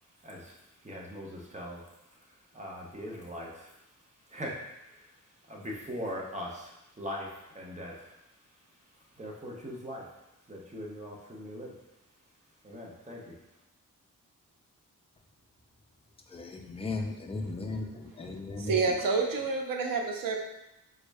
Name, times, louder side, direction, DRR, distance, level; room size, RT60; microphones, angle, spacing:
voice 1, 0.2-3.8 4.3-8.2 9.2-10.1 10.5-11.8 12.6-13.3, equal, 20° right, -2 dB, 0.6 m, -41 dB
voice 2, 16.3-18.8, left 3 dB, 20° left, 2 dB, 0.3 m, -36 dB
voice 3, 18.6-20.4, right 4 dB, 70° right, 2 dB, 0.6 m, -28 dB
3.6 x 2.1 x 3.4 m, 0.90 s
wide cardioid pair, 110°, 34 cm